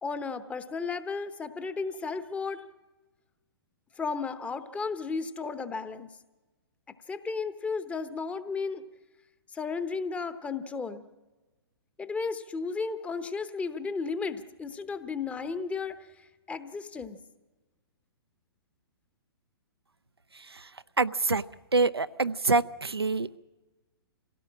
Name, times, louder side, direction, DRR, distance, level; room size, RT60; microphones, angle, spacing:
voice 1, 0.0-2.6 4.0-6.1 7.1-8.8 9.5-11.1 12.0-16.0 16.5-17.2, left 4 dB, 10° left, 13 dB, 0.9 m, -34 dB
voice 2, 20.3-20.7 21.0-21.4 21.7-23.4, right 3 dB, 85° right, 12 dB, 0.6 m, -26 dB
26.5 x 17.0 x 7.5 m, 1.2 s
figure-of-eight pair, 120°, 13 cm